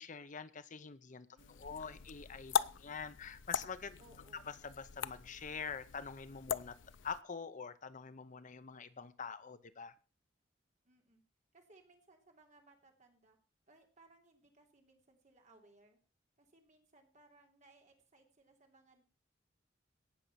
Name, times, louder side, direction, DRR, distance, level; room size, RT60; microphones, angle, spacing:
voice 1, 0.0-4.0 4.3-6.8 7.0-9.9, left 6 dB, 40° left, 0.7 m, -45 dB
voice 2, 1.3-1.8 2.5-3.2 4.0-4.5 10.8-11.2 11.5-13.4 13.7-16.0 16.4-19.0, right 2 dB, 40° right, 3.2 m, -65 dB
sound 1, 1.4-7.2, left 7 dB, 80° left, 0.6 m, -41 dB
17.5 x 6.6 x 5.8 m
head